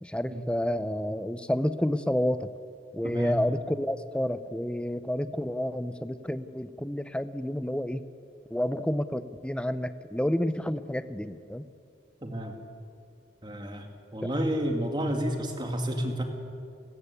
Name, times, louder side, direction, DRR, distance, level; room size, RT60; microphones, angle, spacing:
voice 1, 0.0-2.5 2.9-8.0 8.5-11.7, equal, 5° left, 12 dB, 0.6 m, -30 dB
voice 2, 3.0-3.4 12.2-12.5 13.4-13.9 14.1-16.2, equal, 25° right, 3 dB, 2.3 m, -30 dB
29.5 x 14.0 x 8.4 m, 2.4 s
head